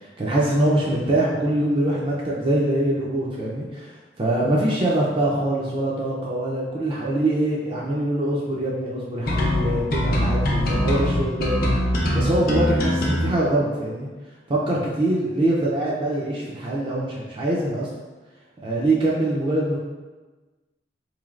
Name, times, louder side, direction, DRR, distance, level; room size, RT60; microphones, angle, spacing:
voice 1, 0.0-11.7 12.1-14.1 14.5-17.9 18.6-19.8, right 1 dB, 30° right, -5 dB, 0.4 m, -23 dB
sound 1, 9.3-13.3, left 1 dB, 55° left, 0.6 m, -22 dB
3.9 x 3.1 x 2.4 m, 1.3 s
head